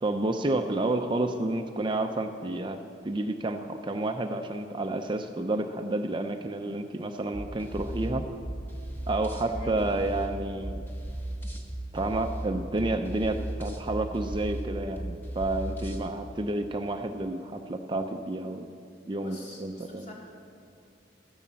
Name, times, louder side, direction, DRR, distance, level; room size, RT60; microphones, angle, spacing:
voice 1, 0.0-8.2 9.1-10.8 11.9-18.7 19.1-20.1, right 2 dB, 25° right, 6 dB, 0.6 m, -30 dB
sound 1, 7.3-16.0, right 1 dB, 10° left, 1.5 m, -36 dB
voice 2, 19.2-20.1, left 2 dB, 40° left, -4 dB, 3.5 m, -45 dB
14.0 x 11.0 x 7.4 m, 2.5 s
head